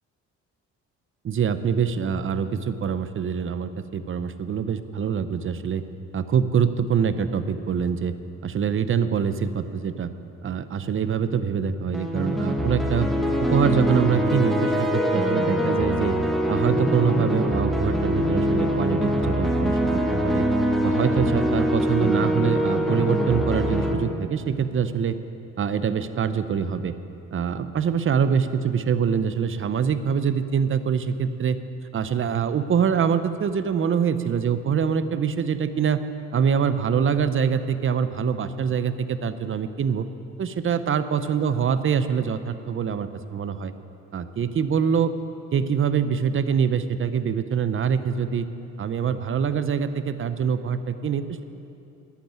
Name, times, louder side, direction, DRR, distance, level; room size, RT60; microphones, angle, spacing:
voice 1, 1.2-5.8 6.1-8.2 8.4-10.1 10.4-13.1 13.4-16.2 16.5-20.5 20.8-25.2 25.6-27.0 27.3-31.6 31.9-36.0 36.3-40.1 40.4-43.7 44.1-45.2 45.5-48.5 48.8-51.4, right 7 dB, 45° right, 12 dB, 0.7 m, -24 dB
sound 1, 11.9-23.9, equal, ahead, 1.3 m, -23 dB
11.5 x 8.5 x 8.9 m, 2.8 s
cardioid pair, 90°, 30 cm